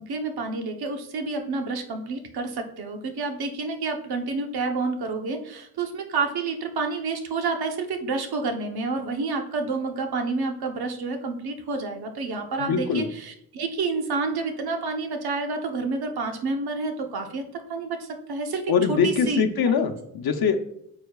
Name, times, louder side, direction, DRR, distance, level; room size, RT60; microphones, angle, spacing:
voice 1, 0.0-19.4 19.7-19.8, right 3 dB, 65° right, 4 dB, 1.0 m, -29 dB
voice 2, 12.6-13.1 18.7-20.6, left 6 dB, 65° left, 6 dB, 0.8 m, -23 dB
9.2 x 7.7 x 2.4 m, 0.74 s
wide cardioid pair, 175°, 40 cm